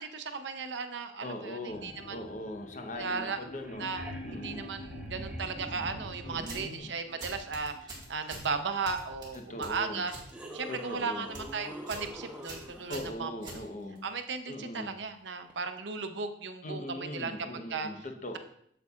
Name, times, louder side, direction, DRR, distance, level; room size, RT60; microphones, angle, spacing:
voice 1, 0.0-2.2 3.0-3.4 3.8-7.8 8.1-10.1 10.5-13.6 14.0-17.9, right 4 dB, 85° right, 8 dB, 0.7 m, -36 dB
voice 2, 1.2-3.9 4.2-4.7 6.2-7.2 9.3-10.1 10.7-11.3 12.9-14.0 14.5-14.9 16.6-18.4, left 1 dB, 45° left, 4 dB, 0.9 m, -40 dB
sound 1, 1.7-12.8 13.1-13.7 14.3-14.4, left 2 dB, 60° left, 0.6 m, -51 dB
sound 2, 3.5-6.6 9.1-9.2 9.9-13.0 15.5-15.6, equal, 5° right, 0.9 m, -44 dB
sound 3, 6.4-6.8 7.2-8.5 8.9-10.3 10.6-10.9 11.2-11.5 11.9-12.1 12.4-14.1, right 2 dB, 25° right, 1.7 m, -44 dB
8.0 x 7.4 x 2.4 m, 0.71 s
head